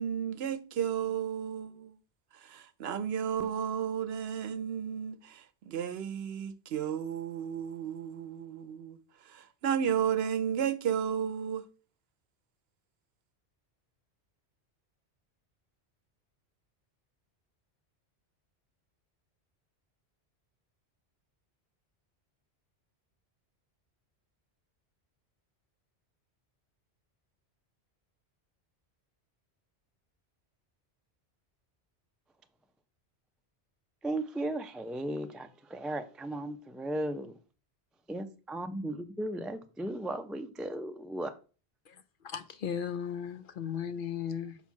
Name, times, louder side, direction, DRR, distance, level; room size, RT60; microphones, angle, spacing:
voice 1, 0.0-1.9 2.4-9.0 9.3-11.6, right 8 dB, 70° right, 0.8 m, -33 dB
voice 2, 34.0-37.3 38.1-41.3, right 1 dB, ahead, 0.3 m, -36 dB
voice 3, 41.9-44.6, left 8 dB, 55° left, 0.7 m, -36 dB
5.8 x 4.4 x 5.8 m
omnidirectional pair, 1.1 m